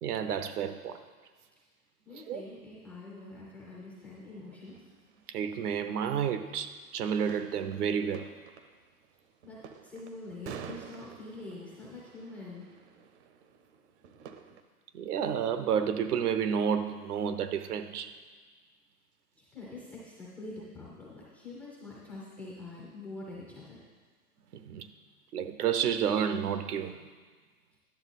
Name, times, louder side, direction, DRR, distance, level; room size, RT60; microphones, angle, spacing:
voice 1, 0.0-1.0 2.1-2.4 5.3-8.3 14.9-18.1 24.5-24.9 25.3-27.0, right 8 dB, 70° right, 10 dB, 0.9 m, -30 dB
voice 2, 2.0-4.9 9.4-9.6 9.8-12.7 19.4-23.8, left 2 dB, 5° left, -7 dB, 0.4 m, -45 dB
sound 1, 3.2-3.3 3.9-6.3 7.0-14.6, right 7 dB, 45° right, 0.7 m, -50 dB
10.5 x 6.9 x 4.1 m, 1.5 s
hypercardioid pair, 135°, 47 cm